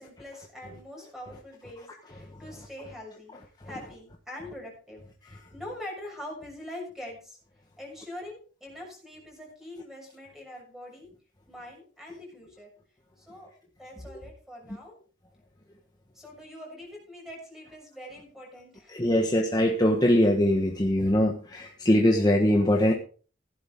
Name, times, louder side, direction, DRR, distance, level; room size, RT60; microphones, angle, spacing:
voice 1, 0.0-3.3 3.6-7.4 7.8-11.1 11.5-12.7 13.2-13.5 13.8-15.0 16.1-19.3 22.0-22.3, left 1 dB, ahead, -1 dB, 6.5 m, -43 dB
voice 2, 18.9-22.9, left 1 dB, 20° left, 1 dB, 1.3 m, -22 dB
16.0 x 11.0 x 3.6 m, 0.39 s
head